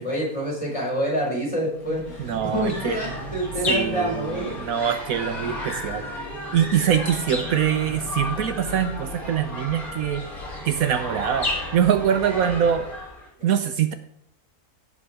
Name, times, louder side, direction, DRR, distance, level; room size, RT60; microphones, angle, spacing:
voice 1, 0.0-4.5 13.4-13.5, equal, 20° left, -4 dB, 4.6 m, -27 dB
sound 1, 1.7-13.3, left 1 dB, 70° left, 3.2 m, -33 dB
voice 2, 1.9-3.0 3.7-6.1 6.5-10.2 10.6-12.9 13.4-13.9, right 9 dB, 70° right, 9 dB, 1.1 m, -24 dB
16.5 x 5.6 x 4.8 m, 0.70 s
omnidirectional pair, 1.6 m